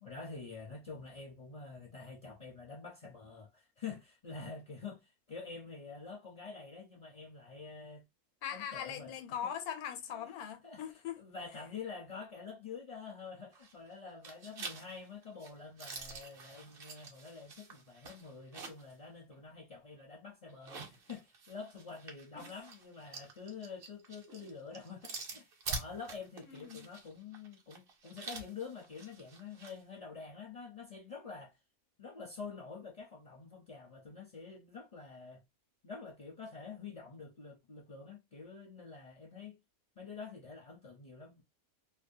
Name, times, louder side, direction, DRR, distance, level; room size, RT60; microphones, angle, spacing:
voice 1, 0.0-8.1 8.5-9.1 10.1-10.3 10.6-10.8 11.2-31.6 32.0-35.4 35.8-39.6 40.0-41.4, left 5 dB, 45° left, 0.4 m, -47 dB
voice 2, 8.4-11.2 22.3-22.5 26.4-26.9, left 9 dB, 90° left, 1.1 m, -41 dB
sound 1, 13.5-13.9 14.2-18.9 19.3-19.4 20.5-29.8, right 4 dB, 55° right, 0.7 m, -47 dB
2.7 x 2.1 x 2.6 m
omnidirectional pair, 1.5 m